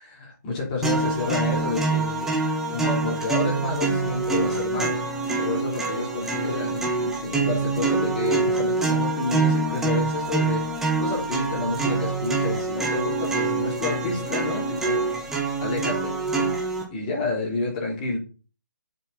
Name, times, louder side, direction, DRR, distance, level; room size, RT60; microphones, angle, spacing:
voice 1, 0.0-2.3 2.7-5.1 5.3-15.1 15.6-18.2, left 3 dB, 20° left, -3 dB, 3.9 m, -29 dB
sound 1, 0.8-16.8, right 3 dB, 5° right, 1.1 m, -25 dB
7.8 x 7.5 x 4.3 m, 0.35 s
hypercardioid pair, 165°, 10 cm